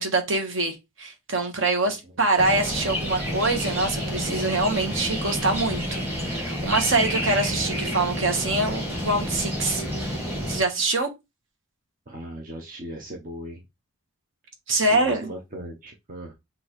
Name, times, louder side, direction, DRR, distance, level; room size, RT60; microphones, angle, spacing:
voice 1, 0.0-10.2 10.5-11.1 14.7-15.3, right 2 dB, 65° right, 1.1 m, -25 dB
sound 1, 2.4-10.6, equal, 10° right, 1.5 m, -29 dB
voice 2, 12.1-13.6 14.7-16.3, equal, 40° right, 0.7 m, -38 dB
6.2 x 2.6 x 3.0 m
head